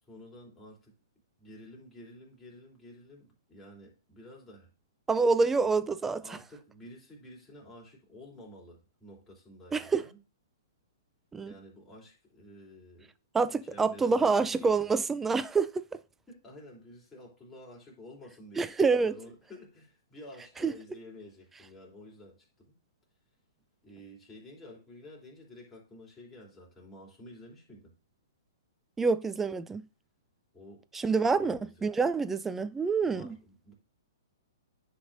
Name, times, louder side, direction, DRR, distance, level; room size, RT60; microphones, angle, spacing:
voice 1, 0.0-0.9 1.4-4.7 5.6-5.7 6.2-10.2 11.4-13.1 13.7-14.9 16.3-22.8 23.8-27.9 30.5-31.8 33.0-33.7, left 1 dB, 15° left, 3.1 m, -51 dB
voice 2, 5.1-6.4 9.7-10.0 11.3-11.5 13.3-15.8 18.6-19.2 20.6-20.7 29.0-29.8 30.9-33.4, right 4 dB, 10° right, 0.4 m, -27 dB
9.8 x 5.4 x 2.6 m
hypercardioid pair, 125°, 2 cm